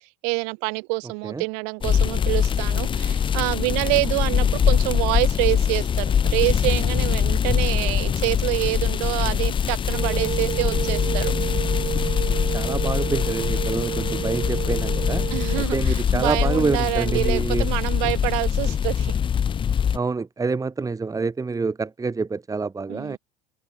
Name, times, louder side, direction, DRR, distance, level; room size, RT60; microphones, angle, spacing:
voice 1, 0.2-11.3 15.3-19.2 22.9-23.2, right 39 dB, 65° right, 5.7 m, -26 dB
sound 1, 1.8-20.0, left 8 dB, 25° left, 0.6 m, -23 dB
sound 2, 9.9-15.6, right 9 dB, 35° right, 2.1 m, -30 dB
voice 2, 12.3-15.2 15.6-17.7 19.9-23.2, right 4 dB, 15° right, 1.7 m, -27 dB
hypercardioid pair, 75°, 20 cm